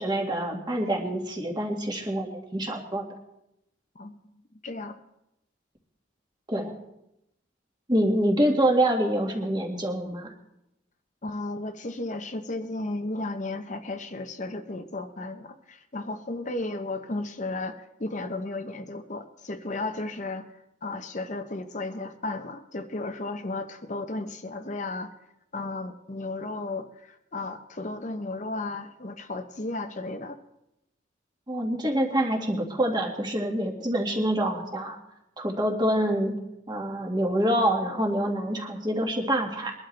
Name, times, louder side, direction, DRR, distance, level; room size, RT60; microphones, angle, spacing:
voice 1, 0.0-3.1 6.5-6.7 7.9-10.3 31.5-35.0 35.4-36.4 36.7-39.7, right 1 dB, 25° right, 1 dB, 2.0 m, -26 dB
voice 2, 4.6-5.0 11.2-25.1 25.5-30.4, left 2 dB, 40° left, 7 dB, 0.8 m, -34 dB
23.0 x 11.5 x 3.4 m, 0.85 s
head